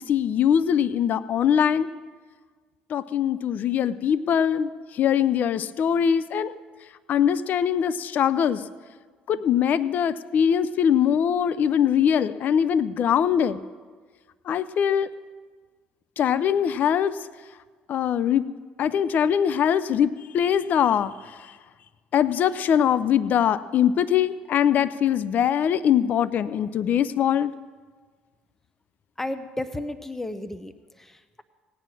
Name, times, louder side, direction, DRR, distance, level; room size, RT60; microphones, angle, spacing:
voice 1, 0.1-1.9 2.9-6.5 7.1-8.6 9.3-13.6 14.5-15.1 16.2-17.2 17.9-18.4 18.8-21.3 22.1-27.5, left 8 dB, 55° left, 15 dB, 0.5 m, -22 dB
voice 2, 29.2-31.4, left 1 dB, 10° left, 11 dB, 0.9 m, -33 dB
18.0 x 9.1 x 6.2 m, 1.5 s
hypercardioid pair, 70°, 3 cm